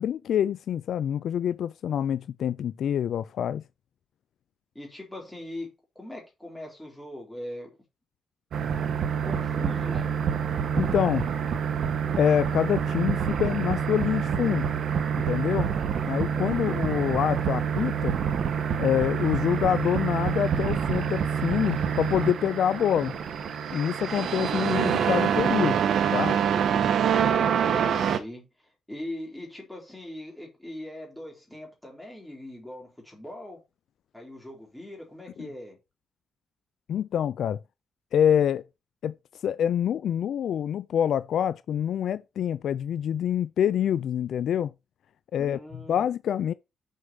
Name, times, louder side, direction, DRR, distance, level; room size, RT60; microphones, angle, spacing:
voice 1, 0.0-3.6 10.8-11.3 12.2-14.7 15.3-15.7 16.1-18.2 18.8-23.1 23.7-25.8 26.1-26.4 35.4-35.5 36.9-37.6 38.1-38.6 39.0-39.1 39.4-44.7 45.3-45.6 45.9-46.5, left 9 dB, 65° left, 0.4 m, -26 dB
voice 2, 4.7-7.8 9.2-10.1 16.6-17.0 27.7-33.6 34.1-35.8 45.4-46.0, left 1 dB, 5° left, 3.6 m, -41 dB
sound 1, 8.5-28.2, right 7 dB, 60° right, 1.1 m, -26 dB
6.5 x 5.2 x 6.1 m
wide cardioid pair, 165°, 0 cm